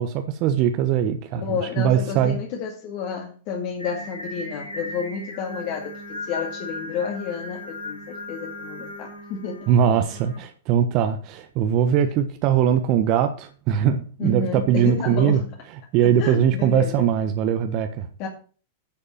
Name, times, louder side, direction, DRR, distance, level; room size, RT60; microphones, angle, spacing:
voice 1, 0.0-1.4 1.8-2.4 9.7-15.4 15.9-18.1, right 9 dB, 45° right, 1.2 m, -21 dB
voice 2, 1.3-9.7 14.2-15.5 16.0-17.1 18.2-18.3, left 5 dB, 50° left, 2.2 m, -30 dB
Singing, 3.8-10.4, left 2 dB, 90° left, 3.3 m, -37 dB
10.5 x 5.4 x 7.3 m
hypercardioid pair, 100°, 0 cm